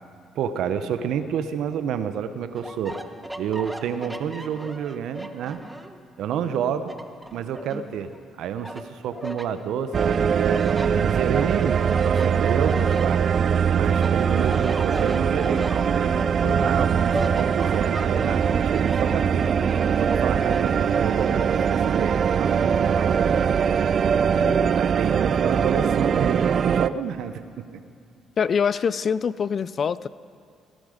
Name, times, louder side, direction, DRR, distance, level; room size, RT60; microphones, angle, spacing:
voice 1, 0.3-3.0 3.4-5.6 6.2-6.9 7.3-8.1 8.4-10.6 10.9-13.2 13.7-19.5 20.0-23.5 24.8-27.8, right 8 dB, 75° right, 11 dB, 0.8 m, -29 dB
sound 1, 2.5-6.0 6.4-8.2 8.6-9.5 9.9-13.6 13.9-21.5, right 1 dB, 10° right, 1.1 m, -36 dB
sound 2, 9.9-26.9, right 7 dB, 55° right, 0.3 m, -22 dB
voice 2, 24.4-24.7 28.4-30.1, left 6 dB, 50° left, 18 dB, 0.4 m, -25 dB
18.5 x 12.5 x 5.0 m, 2.4 s
supercardioid pair, 65°, 0 cm